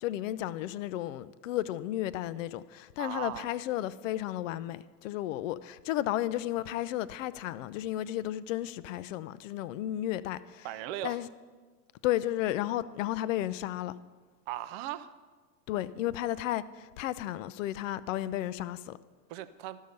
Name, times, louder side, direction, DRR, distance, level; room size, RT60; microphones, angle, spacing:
voice 1, 0.0-10.7 11.0-11.3 12.0-13.9 15.7-19.0, left 13 dB, 55° left, 0.5 m, -33 dB
voice 2, 3.0-3.5 10.6-11.2 14.5-15.1 19.3-19.8, right 13 dB, 40° right, 0.5 m, -38 dB
13.0 x 5.5 x 6.5 m
hypercardioid pair, 120°, 49 cm